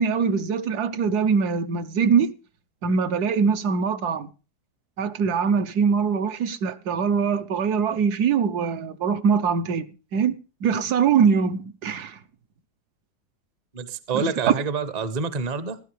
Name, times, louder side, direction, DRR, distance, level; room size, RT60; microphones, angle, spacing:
voice 1, 0.0-2.3 2.8-4.3 5.0-10.3 10.6-12.2 14.1-14.5, right 6 dB, 70° right, 1.3 m, -23 dB
voice 2, 13.7-15.8, right 5 dB, 35° right, 0.7 m, -27 dB
15.0 x 12.0 x 3.3 m
omnidirectional pair, 1.8 m